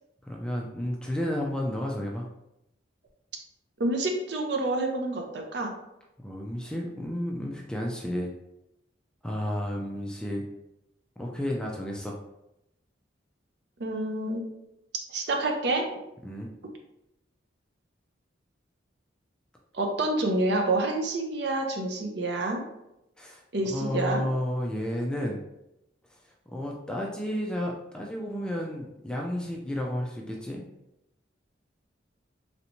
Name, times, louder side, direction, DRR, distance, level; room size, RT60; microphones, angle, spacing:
voice 1, 0.2-2.3 6.2-8.3 9.2-10.4 11.2-12.2 16.2-16.5 23.2-23.4 23.7-25.4 26.1-26.2 26.5-30.6, left 1 dB, 5° left, -1 dB, 0.3 m, -32 dB
voice 2, 3.8-5.7 13.8-14.4 15.1-15.9 19.7-22.6 23.5-24.3, right 2 dB, 60° right, 2 dB, 0.6 m, -28 dB
3.3 x 2.7 x 2.8 m, 0.87 s
head